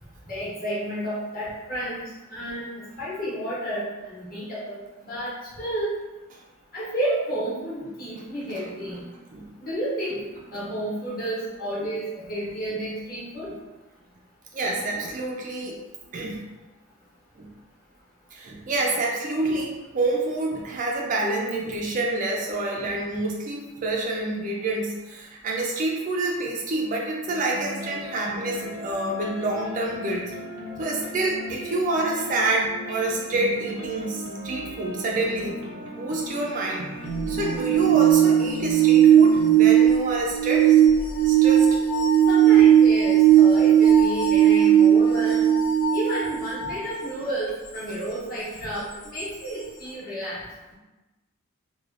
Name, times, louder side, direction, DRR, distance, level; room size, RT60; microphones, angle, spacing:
voice 1, 0.3-2.7 3.0-5.9 6.7-9.0 9.6-10.2 10.5-13.5 42.3-45.5 45.9-50.4, right 1 dB, 40° left, -8 dB, 1.0 m, -31 dB
voice 2, 14.5-15.8 16.1-16.4 17.4-17.5 18.3-30.2 30.8-35.6 35.8-36.9 37.3-40.7 41.2-41.8, right 2 dB, 35° right, -1 dB, 0.3 m, -27 dB
sound 1, 27.3-39.5, equal, 90° right, 0.7 m, -36 dB
sound 2, 37.1-46.9 49.2-49.3, right 10 dB, 80° left, 0.6 m, -17 dB
3.2 x 2.2 x 2.4 m, 1.1 s
head